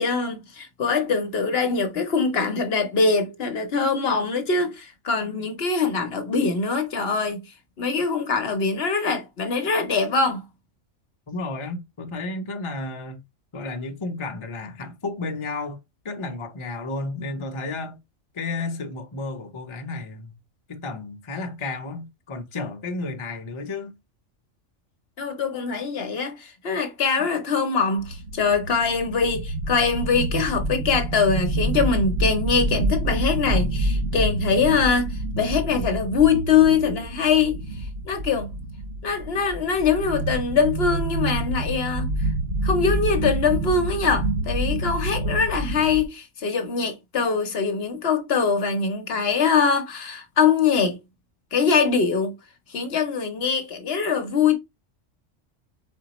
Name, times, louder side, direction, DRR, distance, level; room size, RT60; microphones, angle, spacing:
voice 1, 0.0-7.4 7.8-10.4 25.2-37.6 38.1-38.5 39.0-42.3 42.6-51.0 51.5-52.3 52.7-54.6, left 5 dB, 55° left, 0.9 m, -23 dB
voice 2, 11.3-13.2 13.5-15.8 16.0-18.0 18.3-20.3 20.7-23.9 27.2-27.3, left 3 dB, 30° left, 0.6 m, -32 dB
sound 1, 28.0-46.0, right 1 dB, 65° right, 1.1 m, -27 dB
4.2 x 3.9 x 2.9 m
omnidirectional pair, 1.3 m